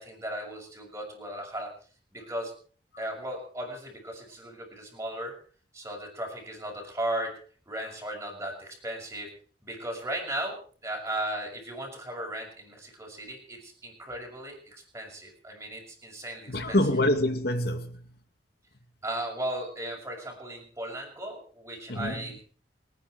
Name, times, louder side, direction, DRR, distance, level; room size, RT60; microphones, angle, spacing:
voice 1, 0.0-1.7 2.1-2.5 3.0-5.4 5.7-7.4 7.7-9.3 9.6-16.8 19.0-22.4, right 1 dB, 15° right, 6.3 m, -36 dB
voice 2, 16.5-18.2 21.9-22.3, left 1 dB, 60° left, 2.4 m, -26 dB
28.0 x 10.0 x 4.7 m
head